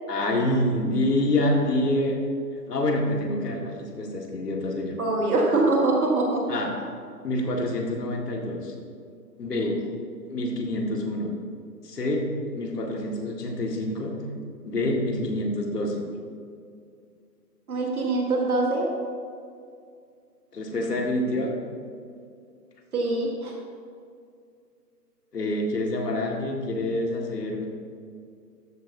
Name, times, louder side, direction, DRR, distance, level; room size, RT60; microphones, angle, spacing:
voice 1, 0.1-2.2 2.7-4.9 5.5-5.6 6.5-6.7 7.2-8.7 9.4-9.8 10.3-11.3 11.8-12.2 12.5-14.1 14.6-16.0 20.5-21.5 25.3-27.7, left 1 dB, 70° left, 0 dB, 2.0 m, -27 dB
voice 2, 5.0-6.5 9.6-9.7 17.7-18.9 22.9-23.5, right 2 dB, 60° right, -1 dB, 1.6 m, -23 dB
13.5 x 8.5 x 2.7 m, 2.3 s
hypercardioid pair, 175°, 50 cm